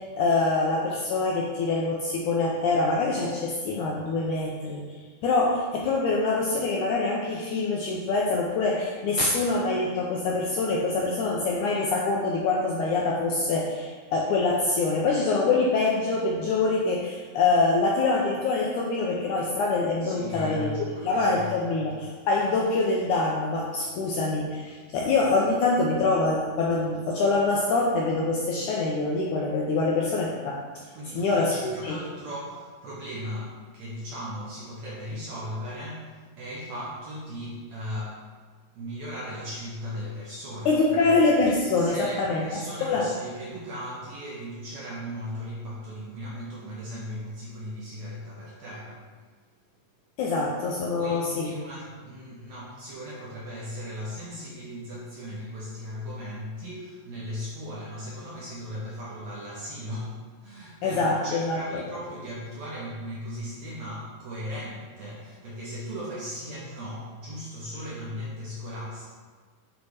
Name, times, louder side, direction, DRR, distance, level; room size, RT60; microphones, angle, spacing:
voice 1, 0.0-20.8 21.0-30.6 31.1-32.0 40.6-42.6 42.9-43.1 50.2-51.5 60.8-61.8, left 3 dB, 80° left, -2 dB, 1.8 m, -25 dB
voice 2, 20.0-21.8 30.9-38.3 38.7-41.2 41.8-49.1 51.0-69.1, equal, 70° right, -5 dB, 1.7 m, -37 dB
8.7 x 3.5 x 4.8 m, 1.5 s
omnidirectional pair, 4.2 m